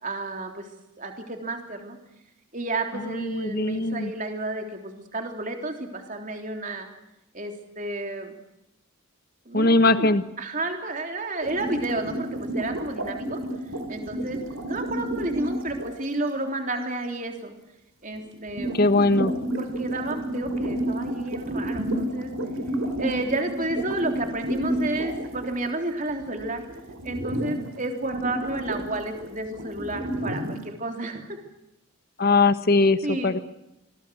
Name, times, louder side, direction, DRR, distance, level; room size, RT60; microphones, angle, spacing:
voice 1, 0.0-0.7 1.0-2.0 2.5-6.9 7.3-8.3 9.4-10.1 10.4-13.4 13.9-14.4 14.7-17.5 18.0-18.8 19.6-22.3 23.0-26.6 27.0-31.4 33.0-33.3, right 2 dB, 35° right, 4 dB, 3.5 m, -31 dB
voice 2, 2.9-4.1 9.5-10.2 18.7-19.3 32.2-33.4, left 3 dB, 45° left, 12 dB, 1.4 m, -21 dB
sound 1, 11.4-15.9 18.2-25.8 26.0-27.7 28.1-30.5, right 1 dB, 70° right, 4.4 m, -30 dB
28.0 x 22.5 x 6.4 m, 0.89 s
head